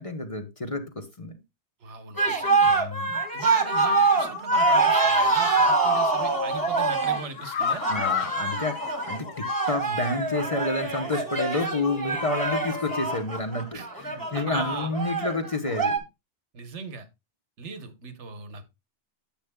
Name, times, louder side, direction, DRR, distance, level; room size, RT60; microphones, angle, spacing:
voice 1, 0.0-1.4 2.6-3.2 7.9-16.0, left 2 dB, 30° left, 1.0 m, -30 dB
voice 2, 1.8-2.8 3.3-7.8 13.7-13.9 14.3-14.9 16.5-17.1 17.6-18.6, right 5 dB, 85° right, 1.4 m, -39 dB
sound 1, 2.2-16.0, right 3 dB, 20° right, 1.2 m, -25 dB
sound 2, 5.7-6.1 6.4-9.8 10.2-10.3 10.6-10.7, left 8 dB, 50° left, 0.6 m, -33 dB
10.0 x 7.8 x 2.2 m
omnidirectional pair, 1.1 m